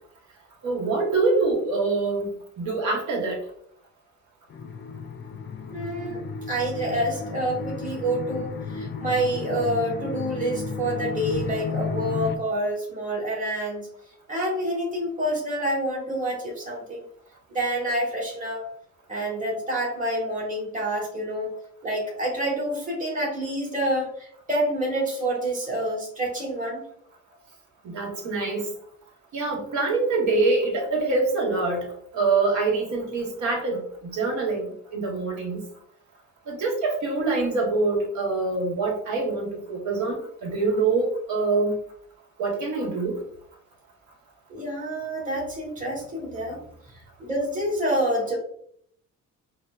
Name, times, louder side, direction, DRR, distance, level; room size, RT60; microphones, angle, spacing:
voice 1, 0.6-2.3 2.6-3.4 27.8-28.7 29.3-31.9 32.1-35.6 36.5-41.8 42.4-43.2, right 3 dB, 75° right, 1 dB, 1.2 m, -25 dB
sound 1, 4.5-12.4, left 4 dB, 40° left, 0.4 m, -33 dB
voice 2, 5.7-6.2 6.5-13.9 14.3-17.0 17.5-18.6 19.1-21.5 21.8-26.8 44.5-46.6 47.2-48.4, right 1 dB, 25° right, -2 dB, 1.4 m, -27 dB
5.1 x 2.1 x 2.4 m, 0.66 s
cardioid pair, 90°, 30 cm